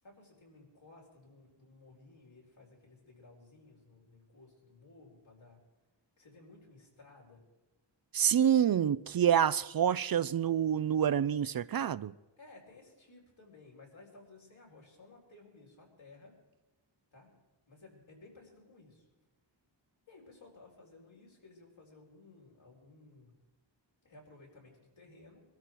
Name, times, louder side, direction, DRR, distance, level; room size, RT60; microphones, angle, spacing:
voice 1, 0.0-5.6 6.2-7.4 12.4-16.4 17.1-17.3 17.7-19.1 20.1-23.3 24.0-25.4, left 3 dB, 80° left, 4.5 m, -57 dB
voice 2, 8.1-12.1, right 9 dB, 50° right, 0.4 m, -27 dB
22.5 x 13.0 x 4.7 m
wide cardioid pair, 70°, 46 cm